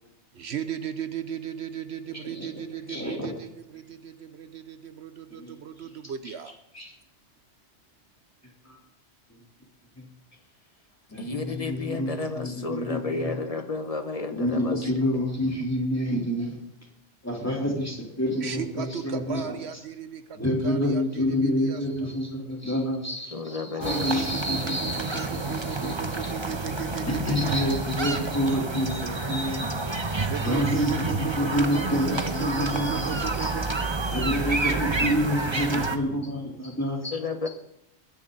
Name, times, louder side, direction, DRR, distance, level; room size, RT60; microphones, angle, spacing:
voice 1, 0.3-6.6 18.4-21.8 23.9-27.5 30.2-34.0, right 8 dB, 70° right, 10 dB, 1.1 m, -36 dB
voice 2, 2.9-3.3 5.3-5.6 6.7-6.9 8.7-8.8 9.3-9.4 10.0-10.1 11.1-13.4 14.3-16.6 17.2-19.4 20.4-25.9 26.2-26.3 27.3-33.5 34.1-37.2, equal, 15° left, -2 dB, 3.6 m, -28 dB
voice 3, 11.2-14.9 23.3-24.2 37.1-37.5, left 4 dB, 35° left, 7 dB, 1.2 m, -32 dB
sound 1, 23.8-36.0, right 3 dB, 25° right, 1.1 m, -29 dB
21.5 x 10.5 x 4.0 m, 0.83 s
omnidirectional pair, 1.2 m